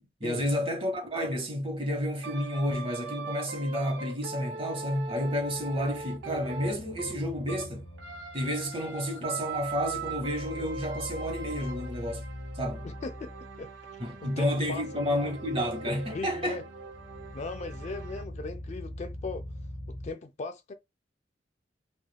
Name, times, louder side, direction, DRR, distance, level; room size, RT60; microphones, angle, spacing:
voice 1, 0.2-7.8 8.3-12.2 12.5-12.9 14.0-16.6, equal, 30° right, 0.9 m, -31 dB
sound 1, 2.2-7.7 8.0-18.2, right 4 dB, 80° right, 0.5 m, -41 dB
sound 2, 5.0-20.1, left 1 dB, 90° left, 1.0 m, -44 dB
voice 2, 12.8-13.7 14.2-14.8 15.1-15.3 16.1-16.6 17.3-19.4 19.9-20.7, left 3 dB, 40° left, 0.3 m, -38 dB
3.3 x 2.4 x 2.2 m
head